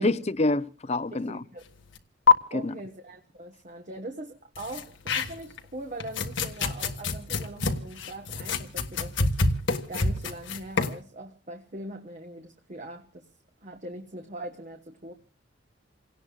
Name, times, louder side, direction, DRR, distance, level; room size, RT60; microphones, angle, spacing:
voice 1, 0.0-1.4 2.5-2.7, left 2 dB, 35° left, 0.7 m, -27 dB
voice 2, 1.1-1.6 2.5-9.3 9.9-13.2 13.6-15.1, right 1 dB, 40° right, 1.3 m, -41 dB
sound 1, 2.0-2.1 2.3-2.4 4.6-5.6 6.0-11.0, left 4 dB, 80° left, 1.7 m, -26 dB
29.0 x 18.0 x 2.4 m
head